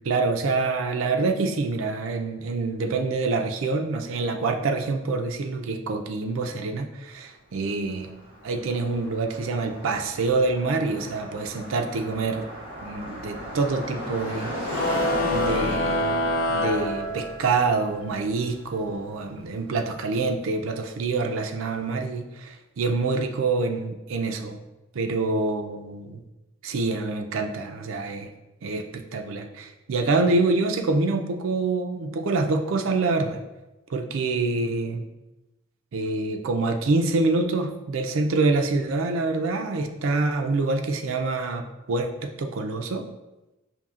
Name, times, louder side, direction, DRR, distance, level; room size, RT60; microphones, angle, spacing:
voice 1, 0.0-8.1 8.4-12.5 12.8-14.5 14.8-15.0 15.3-16.2 16.5-24.6 24.9-26.0 26.6-28.3 28.6-33.4 33.9-35.0 35.9-41.6 41.9-43.0, right 3 dB, 75° right, 5 dB, 0.4 m, -26 dB
Car passing by, 7.6-19.6, equal, 25° right, 1.2 m, -36 dB
sound 1, 14.7-17.7, left 1 dB, 75° left, 0.6 m, -26 dB
5.3 x 2.7 x 2.4 m, 1.0 s
head